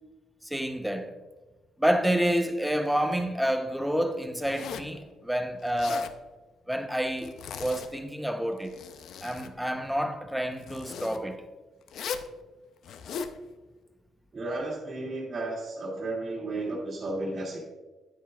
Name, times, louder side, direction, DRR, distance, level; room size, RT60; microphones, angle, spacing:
voice 1, 0.4-1.2 1.8-6.2 6.7-8.7 9.2-11.4, equal, ahead, 0.8 m, -29 dB
Zipper (clothing), 4.4-5.0 5.6-6.2 7.2-8.1 8.5-9.5 10.6-11.2 11.9-12.3 12.8-13.4, left 6 dB, 70° left, 0.5 m, -38 dB
voice 2, 14.3-17.6, right 2 dB, 35° right, 2.3 m, -33 dB
9.8 x 9.5 x 2.4 m
cardioid pair, 90°, 0 cm